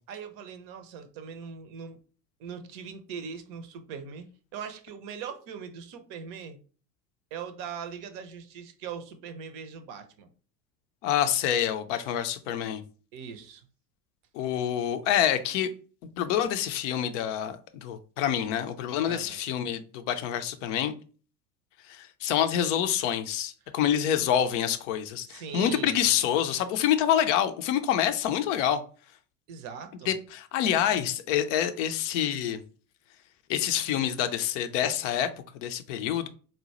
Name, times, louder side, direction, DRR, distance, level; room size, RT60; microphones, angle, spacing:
voice 1, 0.1-2.0 2.4-6.6 7.3-10.3 13.1-13.7 19.1-19.4 25.2-26.1 29.5-30.1, right 6 dB, 40° right, 0.6 m, -40 dB
voice 2, 11.0-12.8 14.3-15.7 16.2-20.9 21.9-28.8 30.1-32.6 33.5-35.3 35.5-36.3, left 10 dB, 50° left, 0.5 m, -27 dB
3.9 x 2.2 x 2.9 m
figure-of-eight pair, 75°, 49 cm